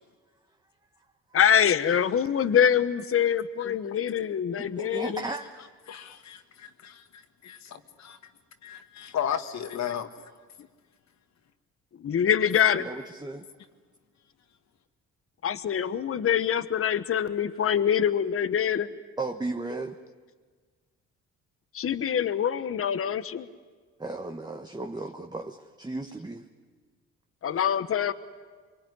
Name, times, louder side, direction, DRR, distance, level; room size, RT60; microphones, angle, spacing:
voice 1, 1.3-5.2 12.0-12.9 15.4-18.9 21.7-23.5 27.4-28.1, left 8 dB, 45° left, 12 dB, 1.1 m, -24 dB
voice 2, 4.8-5.5 12.8-13.4 19.2-20.0 24.0-26.5, right 2 dB, 15° right, 4 dB, 1.3 m, -35 dB
voice 3, 5.9-8.3 8.6-10.1, left 9 dB, 65° left, 8 dB, 1.9 m, -35 dB
24.5 x 24.0 x 9.9 m, 1.5 s
cardioid pair, 90°, 30 cm